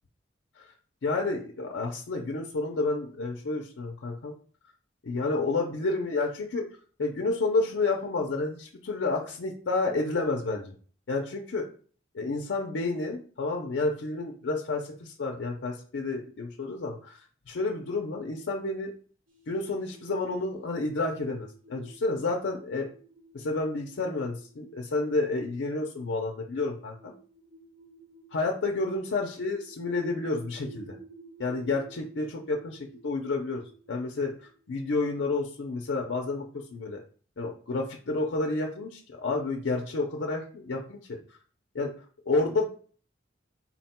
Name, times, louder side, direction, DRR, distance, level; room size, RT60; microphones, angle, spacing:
voice 1, 1.0-4.3 5.0-6.6 7.0-10.7 11.1-11.7 12.1-17.2 17.5-18.9 19.5-22.9 23.3-27.1 28.3-31.0 31.4-34.3 34.7-37.0 37.4-41.2 41.7-41.9 42.3-42.6, left 3 dB, 80° left, 1 dB, 0.5 m, -30 dB
sound 1, 19.3-35.6, right 4 dB, 45° right, 0.8 m, -53 dB
4.1 x 2.2 x 4.2 m, 0.43 s
head